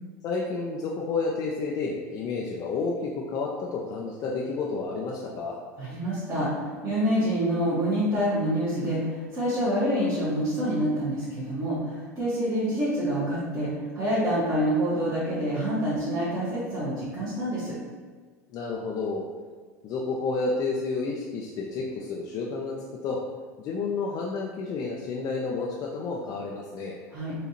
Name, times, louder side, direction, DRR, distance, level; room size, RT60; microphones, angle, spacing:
voice 1, 0.2-5.6 18.5-19.2 19.8-22.8 23.0-23.2 23.6-27.0, left 4 dB, 45° left, -2 dB, 0.4 m, -30 dB
voice 2, 5.8-13.7 13.9-17.7 27.1-27.3, equal, 35° right, -12 dB, 1.5 m, -27 dB
4.1 x 2.7 x 2.9 m, 1.5 s
hypercardioid pair, 80°, 9 cm